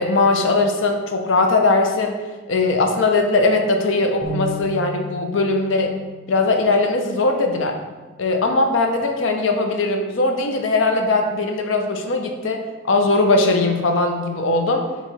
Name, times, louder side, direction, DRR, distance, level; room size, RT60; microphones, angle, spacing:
voice 1, 0.0-6.0 6.3-7.8 8.2-12.6 12.9-14.9, left 3 dB, 75° left, 4 dB, 0.5 m, -19 dB
sound 1, 4.2-7.7, equal, 25° left, 0.8 m, -34 dB
4.5 x 3.0 x 4.0 m, 1.3 s
head